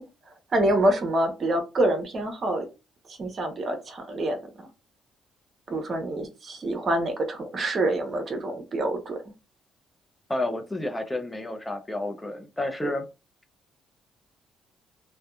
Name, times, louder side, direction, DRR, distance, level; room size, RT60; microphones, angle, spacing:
voice 1, 0.5-2.6 3.1-4.7 5.7-9.2, right 1 dB, 50° right, 0.8 m, -26 dB
voice 2, 10.3-13.0, left 1 dB, 15° left, 0.5 m, -30 dB
2.6 x 2.2 x 2.2 m
supercardioid pair, 65°, 0 cm